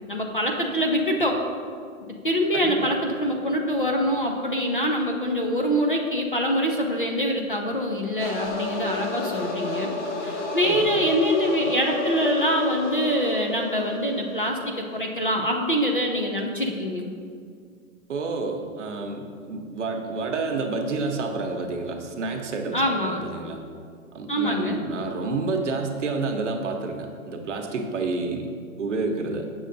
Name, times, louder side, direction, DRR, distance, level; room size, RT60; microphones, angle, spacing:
voice 1, 0.1-1.4 2.2-9.9 10.2-17.1 22.7-23.2 24.3-24.8, equal, 40° left, 1 dB, 0.4 m, -24 dB
voice 2, 2.5-2.9 10.6-11.0 18.1-23.6 24.1-28.5 28.8-29.5, right 3 dB, 55° right, 3 dB, 0.9 m, -29 dB
sound 1, 8.2-14.8, left 2 dB, 55° left, 0.9 m, -31 dB
8.6 x 6.4 x 2.6 m, 2.1 s
hypercardioid pair, 180°, 42 cm